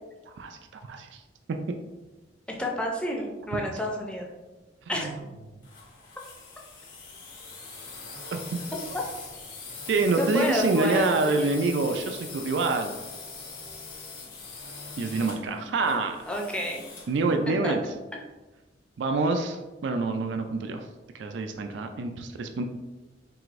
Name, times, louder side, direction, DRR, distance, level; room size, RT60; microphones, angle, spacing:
voice 1, 0.3-1.2 5.0-5.1 8.3-8.4 9.9-13.0 15.0-16.2 17.1-17.8 19.0-20.8 21.1-22.7, right 3 dB, 75° right, 5 dB, 0.4 m, -26 dB
voice 2, 2.6-4.3 4.9-5.1 10.2-11.8 16.3-16.8 17.6-17.7, equal, 5° left, -1 dB, 0.5 m, -30 dB
sound 1, 5.6-17.2, left 4 dB, 45° left, 1.3 m, -42 dB
4.8 x 3.4 x 2.5 m, 1.2 s
head